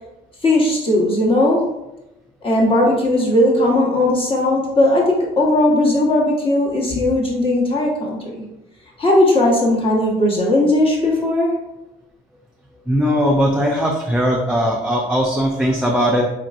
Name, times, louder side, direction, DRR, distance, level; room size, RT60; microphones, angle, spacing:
voice 1, 0.4-1.7 2.4-8.4 9.0-11.5, left 1 dB, 30° left, -2 dB, 1.2 m, -17 dB
voice 2, 12.9-16.2, equal, 5° right, -2 dB, 0.5 m, -19 dB
4.6 x 2.9 x 2.5 m, 0.91 s
cardioid pair, 110°, 17 cm